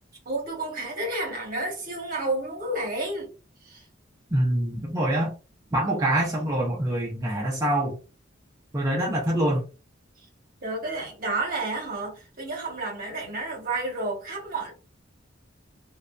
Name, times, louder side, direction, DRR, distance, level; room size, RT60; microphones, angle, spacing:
voice 1, 0.2-3.3 3.6-3.8 10.6-14.7, right 2 dB, 50° right, 1.1 m, -31 dB
voice 2, 4.3-5.3 5.7-8.0 8.7-9.6, right 1 dB, 20° right, 0.5 m, -25 dB
2.6 x 2.1 x 2.3 m
head